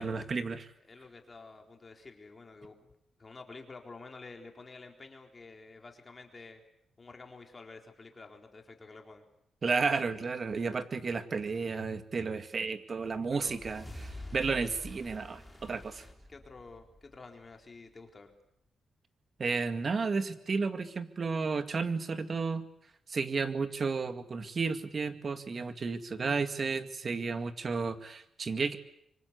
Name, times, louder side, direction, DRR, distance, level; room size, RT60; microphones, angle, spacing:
voice 1, 0.0-0.7 9.6-16.0 19.4-22.7 23.1-28.8, right 4 dB, 45° right, 10 dB, 2.0 m, -32 dB
voice 2, 0.8-2.9 3.2-6.6 7.0-9.2 13.3-13.6 16.3-18.3, left 3 dB, 30° left, 3 dB, 4.0 m, -50 dB
sound 1, 13.2-17.6, left 1 dB, 5° left, 4.1 m, -47 dB
25.0 x 25.0 x 8.3 m, 0.75 s
cardioid pair, 100°, 0 cm